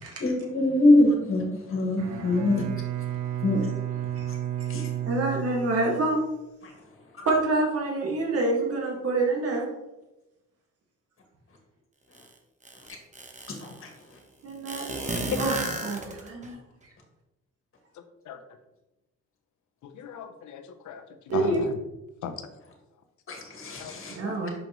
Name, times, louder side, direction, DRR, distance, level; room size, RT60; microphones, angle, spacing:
voice 1, 0.2-1.5 1.7-2.6 3.4-3.6 23.3-24.1, left 2 dB, 45° left, 1 dB, 1.9 m, -22 dB
Bowed string instrument, 1.9-6.2, right 12 dB, 75° right, 1.0 m, -32 dB
voice 2, 5.0-6.2 7.3-9.7 14.4-14.8 15.4-15.5 15.8-16.6 21.3-21.6 24.1-24.5, right 2 dB, 50° right, -1 dB, 1.8 m, -26 dB
sound 1, 12.1-12.2 12.6-13.8 14.7-16.5, right 2 dB, 25° right, 1.1 m, -33 dB
voice 3, 19.8-21.0 21.3-21.7 22.2-22.4 23.8-23.9 24.2-24.4, left 7 dB, 75° left, 7 dB, 0.8 m, -36 dB
6.4 x 5.3 x 3.1 m, 0.97 s
cardioid pair, 90°, 30 cm